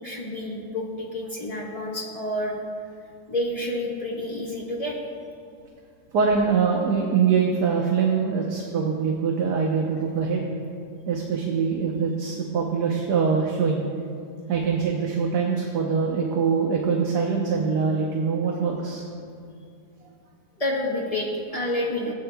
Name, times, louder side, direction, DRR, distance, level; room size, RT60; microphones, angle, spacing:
voice 1, 0.0-2.6 3.3-5.0 20.6-22.1, left 1 dB, 25° left, -4 dB, 1.3 m, -29 dB
voice 2, 6.1-10.4 11.1-13.8 14.5-19.0, right 5 dB, 75° right, 0 dB, 1.4 m, -23 dB
17.5 x 8.8 x 2.3 m, 2.3 s
omnidirectional pair, 1.8 m